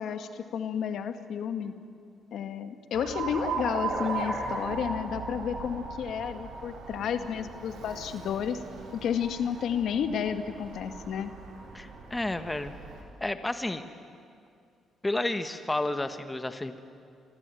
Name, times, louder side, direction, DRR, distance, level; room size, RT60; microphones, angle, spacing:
voice 1, 0.0-1.8 2.3-8.6 8.9-11.3, left 8 dB, 70° left, 9 dB, 1.7 m, -31 dB
Alarm, 2.9-13.0, right 4 dB, 80° right, 5.3 m, -38 dB
voice 2, 11.7-12.7 13.2-13.8 15.0-16.8, left 2 dB, 15° left, 9 dB, 1.5 m, -31 dB
28.0 x 23.0 x 9.2 m, 2.4 s
cardioid pair, 90°, 0 cm